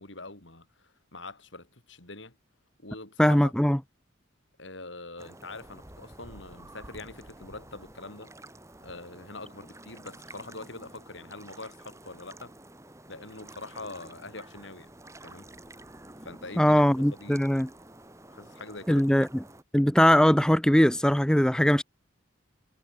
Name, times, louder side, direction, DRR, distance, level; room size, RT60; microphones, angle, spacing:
voice 1, 0.0-2.4 2.8-3.5 4.6-8.3 8.8-12.5 13.1-14.9 15.2-15.5 16.2-17.7 18.3-19.1, left 2 dB, 70° left, 5.2 m, -44 dB
voice 2, 3.2-3.8 16.6-17.7 18.9-19.3 19.7-21.8, equal, 5° left, 0.5 m, -21 dB
sound 1, 5.2-19.6, right 1 dB, 15° right, 3.2 m, -50 dB
head